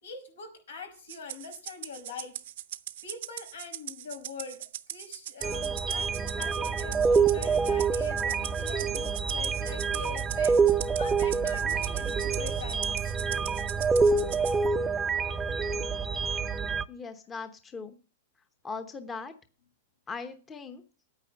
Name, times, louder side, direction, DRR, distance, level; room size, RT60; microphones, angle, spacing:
voice 1, 0.0-2.4 3.0-12.9, left 5 dB, 85° left, 5 dB, 5.9 m, -44 dB
Rattle (instrument), 1.1-14.6, right 13 dB, 65° right, 0.7 m, -40 dB
sound 1, 5.4-16.8, right 5 dB, 10° right, 0.6 m, -27 dB
voice 2, 16.9-17.9 18.6-19.3 20.1-20.8, left 4 dB, 15° left, 9 dB, 0.9 m, -39 dB
9.4 x 9.2 x 6.8 m, 0.38 s
supercardioid pair, 155°, 0 cm